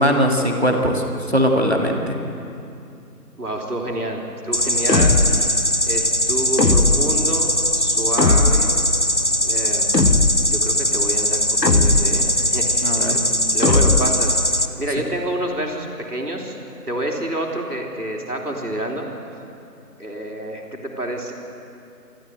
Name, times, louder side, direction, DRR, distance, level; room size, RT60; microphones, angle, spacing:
voice 1, 0.0-2.2 12.8-13.2, equal, 40° right, 2 dB, 1.9 m, -20 dB
voice 2, 3.4-8.7 9.4-9.9 10.5-13.2 13.5-16.6 16.9-19.1 20.0-21.3, right 1 dB, 65° right, 0 dB, 3.9 m, -28 dB
sound 1, 4.5-14.7, equal, 45° left, 0.9 m, -21 dB
sound 2, 4.9-5.5 6.6-7.3 8.2-8.8 9.9-10.6 11.6-12.3 13.6-14.3, left 3 dB, 90° left, 1.4 m, -18 dB
27.5 x 14.0 x 7.9 m, 2.7 s
figure-of-eight pair, 180°, 48 cm